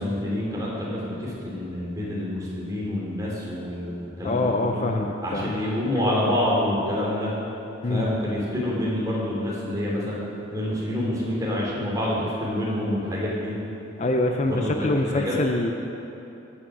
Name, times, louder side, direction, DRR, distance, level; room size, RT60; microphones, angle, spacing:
voice 1, 0.0-4.8 5.2-7.3 7.9-10.2 10.5-13.5 14.4-15.3, left 1 dB, 15° right, -5 dB, 2.6 m, -27 dB
voice 2, 4.2-5.5 7.8-8.1 14.0-15.7, left 2 dB, 35° left, 3 dB, 0.5 m, -24 dB
15.5 x 6.5 x 6.1 m, 2.9 s
head